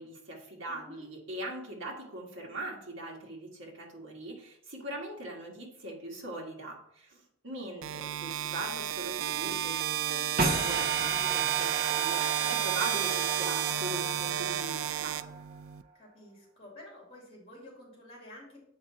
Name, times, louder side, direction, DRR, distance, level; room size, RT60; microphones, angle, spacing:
voice 1, 0.0-15.2, right 1 dB, 65° right, -1 dB, 1.8 m, -41 dB
voice 2, 0.7-1.0 12.4-12.7 15.9-18.6, left 1 dB, 30° left, -2 dB, 3.0 m, -51 dB
sound 1, 7.8-15.8, right 11 dB, 90° right, 0.4 m, -32 dB
sound 2, 10.4-15.6, right 4 dB, 50° right, 0.8 m, -34 dB
7.9 x 4.8 x 4.2 m, 0.72 s
head